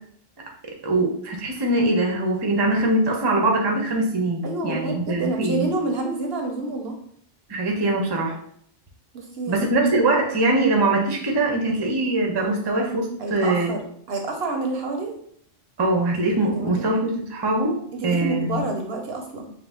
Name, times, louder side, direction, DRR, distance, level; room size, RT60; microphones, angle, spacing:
voice 1, 0.8-5.7 7.5-8.4 9.5-13.7 15.8-18.6, right 2 dB, 30° right, 1 dB, 0.5 m, -22 dB
voice 2, 4.4-7.0 9.1-9.7 13.2-13.8 14.1-15.1 16.6-16.8 18.0-19.5, right 3 dB, 60° right, 3 dB, 0.8 m, -28 dB
5.1 x 2.0 x 3.5 m, 0.65 s
omnidirectional pair, 1.3 m